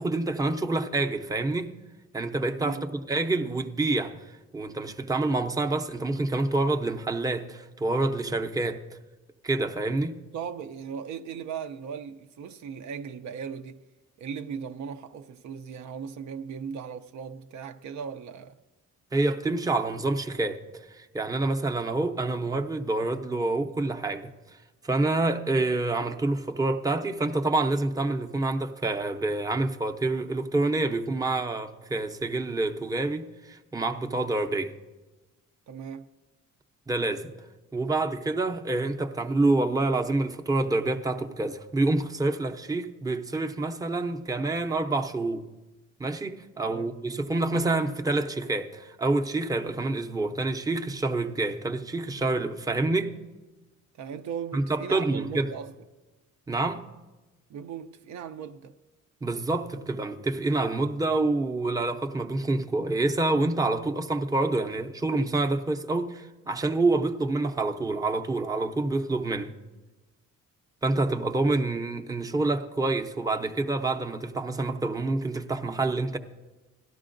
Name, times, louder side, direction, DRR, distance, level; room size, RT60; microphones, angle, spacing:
voice 1, 0.0-1.7 2.1-4.1 4.5-9.0 9.4-10.2 19.1-24.3 24.8-34.7 36.9-37.3 37.7-45.4 46.0-53.1 54.5-55.5 56.5-56.8 59.2-69.5 70.8-76.2, right 2 dB, 10° right, 0.6 m, -27 dB
voice 2, 2.6-2.9 10.3-13.8 14.2-18.6 35.7-36.1 46.6-46.9 54.0-55.7 57.5-58.8, right 7 dB, 65° right, 0.5 m, -38 dB
17.5 x 12.5 x 2.6 m
cardioid pair, 90°, 30 cm